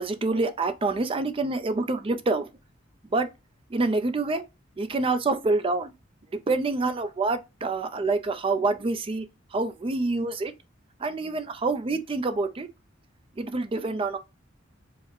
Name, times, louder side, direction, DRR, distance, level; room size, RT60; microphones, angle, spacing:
voice 1, 0.0-2.5 3.1-3.3 3.7-4.4 4.8-5.9 6.5-9.3 9.5-10.5 11.0-12.7 13.4-14.2, right 3 dB, 25° right, 0.4 m, -26 dB
4.7 x 2.1 x 4.4 m
head